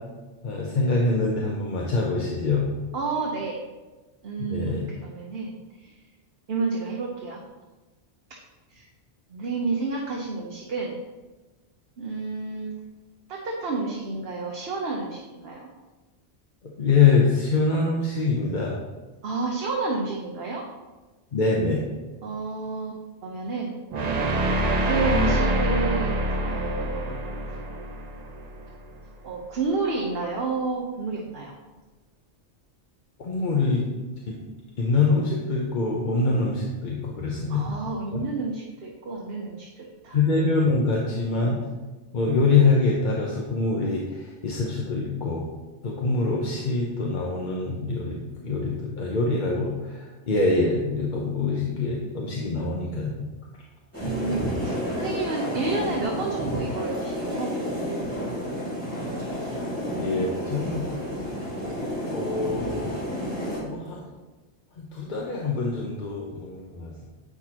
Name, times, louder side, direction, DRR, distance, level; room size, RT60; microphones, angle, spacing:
voice 1, 0.4-2.7 4.4-4.8 16.6-18.8 21.3-21.8 33.2-33.9 34.3-34.4 34.8-37.7 38.1-38.2 40.1-41.7 42.1-45.4 45.8-53.2 59.9-61.2 62.1-63.0 63.6-64.0 64.7-67.1, left 3 dB, 50° left, -2 dB, 0.9 m, -24 dB
voice 2, 2.9-3.6 4.2-5.6 5.8-5.9 6.5-7.4 8.7-8.8 9.3-11.0 12.0-12.7 13.3-15.7 19.2-20.6 22.2-22.9 23.2-23.8 24.8-27.2 27.5-27.6 29.2-31.5 37.5-40.2 54.0-57.5, right 3 dB, 65° right, -1 dB, 1.1 m, -30 dB
sound 1, 23.9-29.0, right 1 dB, 45° right, 0.6 m, -26 dB
sound 2, 53.9-63.6, equal, 10° left, 2.2 m, -30 dB
8.2 x 5.9 x 2.9 m, 1.2 s
omnidirectional pair, 1.2 m